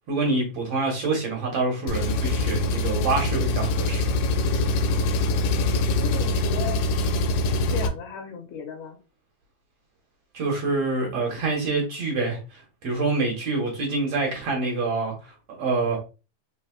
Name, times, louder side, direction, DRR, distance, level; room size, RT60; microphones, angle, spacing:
voice 1, 0.0-4.5 10.3-16.0, right 3 dB, 60° right, 1.9 m, -26 dB
Engine, 1.9-7.9, left 2 dB, 90° left, 2.2 m, -24 dB
voice 2, 5.5-6.8 7.7-9.0, left 6 dB, 75° left, 2.1 m, -36 dB
4.9 x 3.9 x 2.2 m
omnidirectional pair, 3.7 m